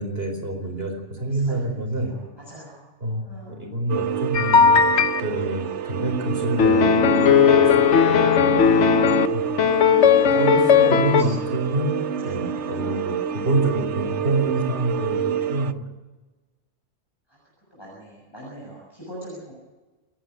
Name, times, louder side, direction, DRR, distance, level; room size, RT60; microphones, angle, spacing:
voice 1, 0.0-2.1 3.0-4.9 5.2-9.4 10.3-12.0 12.2-15.8, right 2 dB, 55° right, 4 dB, 4.8 m, -27 dB
voice 2, 1.3-2.9 3.2-3.6 9.8-11.5 12.2-13.4 17.3-17.4 17.7-19.5, left 1 dB, 20° left, -5 dB, 6.7 m, -40 dB
sound 1, 3.9-15.7, right 8 dB, 75° right, 1.1 m, -28 dB
sound 2, 4.3-5.2 6.6-9.3 9.6-11.2, left 7 dB, 70° left, 1.3 m, -17 dB
29.0 x 11.5 x 9.3 m, 1.2 s
omnidirectional pair, 1.2 m